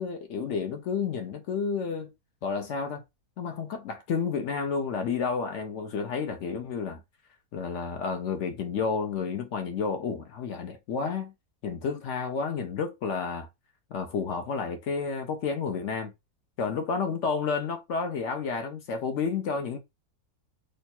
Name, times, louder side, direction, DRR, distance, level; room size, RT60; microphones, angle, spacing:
voice 1, 0.0-2.1 2.4-3.0 3.4-7.0 7.5-11.3 11.6-13.5 13.9-16.1 16.6-19.8, left 5 dB, 65° left, 0.7 m, -31 dB
3.1 x 2.2 x 4.1 m
omnidirectional pair, 1.7 m